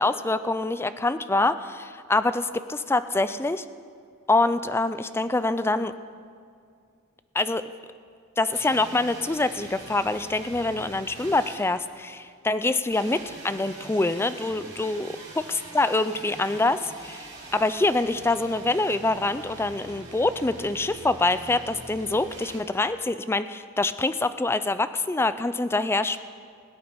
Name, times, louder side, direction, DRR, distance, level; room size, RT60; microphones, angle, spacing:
voice 1, 0.0-3.6 4.3-5.9 7.3-7.6 8.4-15.1 15.5-26.2, left 2 dB, 10° left, 12 dB, 0.3 m, -25 dB
sound 1, 8.5-12.3 12.9-22.6, right 2 dB, 55° right, 4.0 m, -44 dB
20.0 x 8.8 x 5.3 m, 2.3 s
head